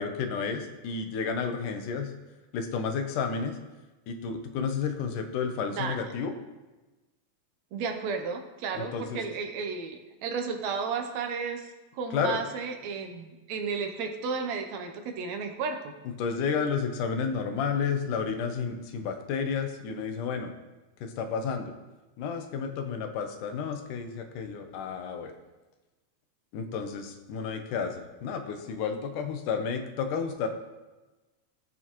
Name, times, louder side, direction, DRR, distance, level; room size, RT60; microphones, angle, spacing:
voice 1, 0.0-2.1 2.5-3.6 4.1-6.3 8.7-9.2 12.1-12.4 16.2-20.5 21.0-21.7 22.2-25.3 26.5-30.5, left 6 dB, 80° left, 6 dB, 2.4 m, -31 dB
voice 2, 7.7-11.7 11.9-15.9, right 5 dB, 70° right, 5 dB, 1.9 m, -33 dB
15.5 x 6.8 x 3.1 m, 1.1 s
omnidirectional pair, 3.7 m